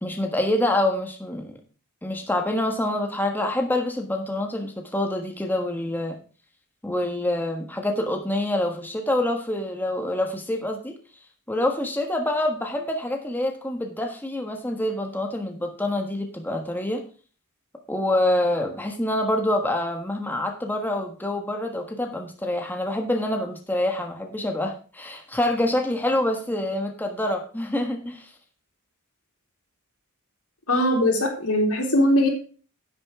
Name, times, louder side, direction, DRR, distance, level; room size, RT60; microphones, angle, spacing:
voice 1, 0.0-1.6 2.0-6.2 6.8-10.9 11.5-17.0 17.9-28.3, left 1 dB, 10° left, 3 dB, 1.4 m, -26 dB
voice 2, 30.7-32.3, left 1 dB, 90° left, 0 dB, 3.6 m, -20 dB
10.5 x 8.7 x 3.6 m, 0.38 s
head